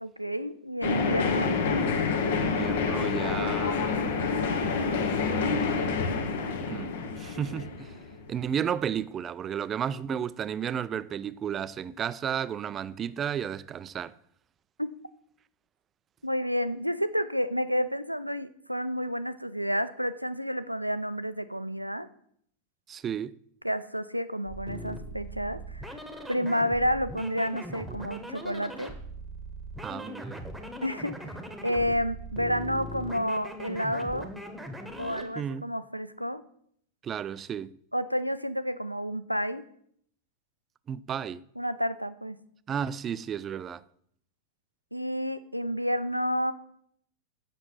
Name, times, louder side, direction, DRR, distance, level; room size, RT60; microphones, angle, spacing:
voice 1, 0.0-1.6 14.8-14.9 16.2-22.1 23.6-26.0 26.3-28.9 30.8-31.4 31.6-34.3 35.0-36.4 37.9-39.7 41.6-42.4 44.9-46.5, equal, 90° right, 0.4 m, -30 dB
sound 1, 0.8-8.5, left 4 dB, 60° left, 1.0 m, -28 dB
voice 2, 2.3-3.9 6.7-7.9 8.3-14.2 22.9-23.4 29.8-30.4 35.4-35.6 37.0-37.8 40.9-41.4 42.7-43.8, right 8 dB, 25° right, 0.3 m, -33 dB
sound 2, 24.4-35.3, equal, 5° right, 1.2 m, -40 dB
7.7 x 6.3 x 5.7 m
figure-of-eight pair, 90°, 0 cm